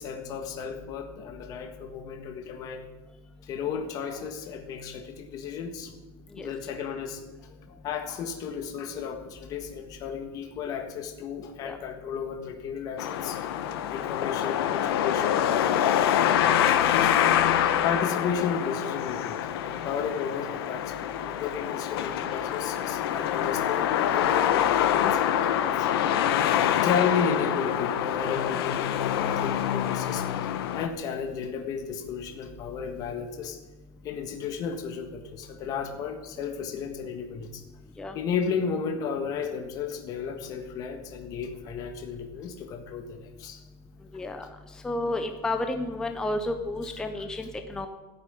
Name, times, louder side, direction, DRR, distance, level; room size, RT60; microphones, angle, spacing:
voice 1, 0.0-2.8 3.5-5.9 6.4-7.2 7.5-13.4 13.9-17.1 17.8-25.2 25.7-25.9 26.8-30.2 30.7-33.6 34.0-37.6 38.1-43.6, left 6 dB, 30° left, 4 dB, 1.5 m, -33 dB
sound 1, 13.0-30.9, left 10 dB, 85° left, 1.4 m, -25 dB
voice 2, 44.1-44.5 44.8-47.9, left 2 dB, 5° left, 6 dB, 0.7 m, -31 dB
14.0 x 8.6 x 10.0 m, 1.2 s
supercardioid pair, 180°, 12 cm